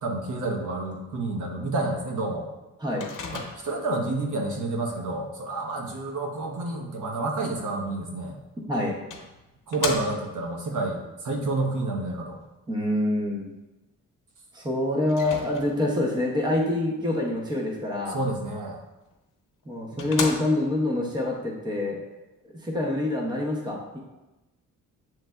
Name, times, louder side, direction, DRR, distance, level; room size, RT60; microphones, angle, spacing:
voice 1, 0.0-2.4 3.3-8.4 9.7-12.4 18.1-18.8 19.9-20.4, right 2 dB, 70° right, 0 dB, 0.9 m, -29 dB
Microwave oven, 3.0-3.9 8.3-8.4 9.1-10.5 15.1-16.0 19.1-19.2 19.6-19.7 20.0-20.9, left 5 dB, 75° left, 0.8 m, -34 dB
voice 2, 8.7-9.0 12.7-13.5 14.5-18.2 19.7-22.0 22.6-24.0, left 1 dB, 15° right, -1 dB, 0.6 m, -26 dB
7.5 x 3.2 x 2.2 m, 1.0 s
wide cardioid pair, 175°, 32 cm